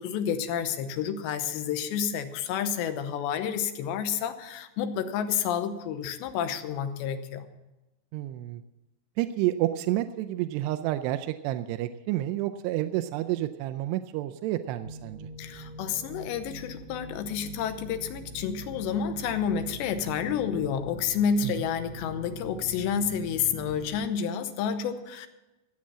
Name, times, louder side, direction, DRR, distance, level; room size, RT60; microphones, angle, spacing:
voice 1, 0.0-7.5 15.4-25.3, left 7 dB, 90° left, 8 dB, 3.1 m, -30 dB
voice 2, 8.1-8.6 9.2-15.3 21.4-21.5, right 14 dB, 80° right, 7 dB, 2.6 m, -29 dB
sound 1, 14.8-24.1, equal, 50° right, 1.8 m, -43 dB
15.5 x 8.5 x 7.4 m, 1.0 s
omnidirectional pair, 5.0 m